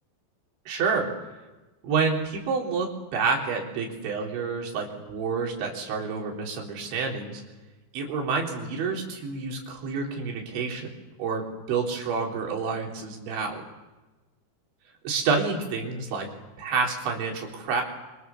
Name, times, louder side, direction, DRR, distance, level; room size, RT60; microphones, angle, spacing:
voice 1, 0.7-1.1 1.8-7.4 7.9-10.9 11.2-13.6 15.0-16.3 16.6-17.8, right 5 dB, 90° right, 0 dB, 6.1 m, -28 dB
26.0 x 26.0 x 7.1 m, 1.1 s
omnidirectional pair, 5.1 m